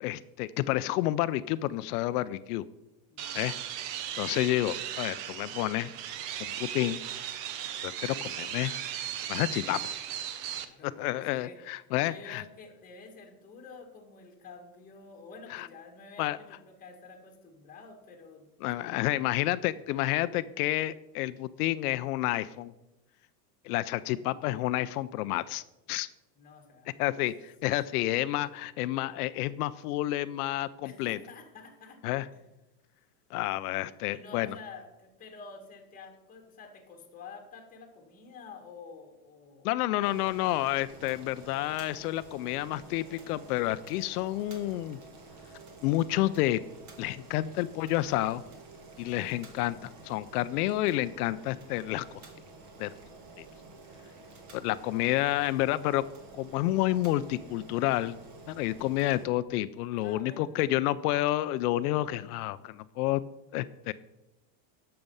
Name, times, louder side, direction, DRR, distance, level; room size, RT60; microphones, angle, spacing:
voice 1, 0.0-2.6 3.3-3.6 4.1-5.9 6.4-7.0 7.8-8.7 9.3-9.9 10.8-12.4 15.5-15.7 16.2-16.4 18.6-22.7 23.6-25.6 25.9-26.1 27.0-31.2 32.0-32.3 33.3-34.6 39.6-45.0 45.8-46.6 47.0-48.4 49.0-52.2 52.8-52.9 53.4-53.5 54.5-56.0 56.4-58.2 58.5-63.2 63.5-63.9, left 15 dB, 65° left, 15 dB, 0.6 m, -29 dB
voice 2, 3.1-3.5 10.5-11.6 12.0-18.5 18.8-18.9 26.4-27.0 27.6-28.0 30.8-32.0 32.3-32.4 34.1-39.7 49.0-49.5 60.0-60.8, left 4 dB, 15° left, 3 dB, 1.7 m, -49 dB
sound 1, 3.2-10.6, right 10 dB, 50° right, 1.0 m, -37 dB
Boiling, 40.0-59.3, right 3 dB, 35° right, 2.0 m, -50 dB
10.5 x 6.8 x 5.5 m, 0.96 s
supercardioid pair, 145°, 50 cm